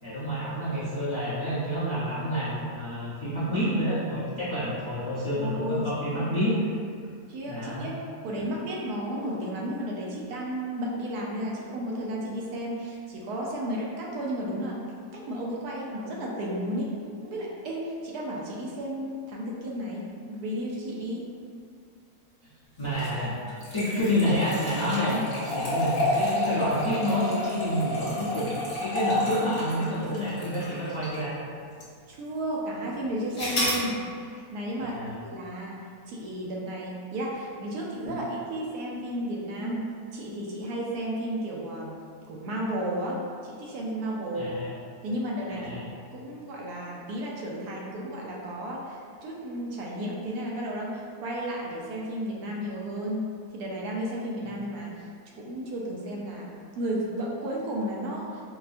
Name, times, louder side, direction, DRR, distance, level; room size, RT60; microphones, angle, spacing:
voice 1, 0.0-6.5 7.5-7.9 22.8-23.3 23.7-28.5 28.8-31.3 34.8-35.2 38.0-38.2 44.3-44.7 45.5-45.8, equal, 25° left, -13 dB, 0.6 m, -28 dB
voice 2, 5.3-6.3 7.3-8.0 8.2-14.8 15.1-16.9 17.2-21.3 25.1-25.2 32.1-42.0 42.3-44.5 45.0-45.8 46.1-55.1 55.4-56.5 56.8-58.4, right 1 dB, 80° right, -3 dB, 1.1 m, -33 dB
sound 1, 22.8-31.3 31.8-31.9 33.3-33.8, left 1 dB, 60° left, 1.3 m, -30 dB
4.4 x 2.1 x 2.5 m, 2.2 s
omnidirectional pair, 1.7 m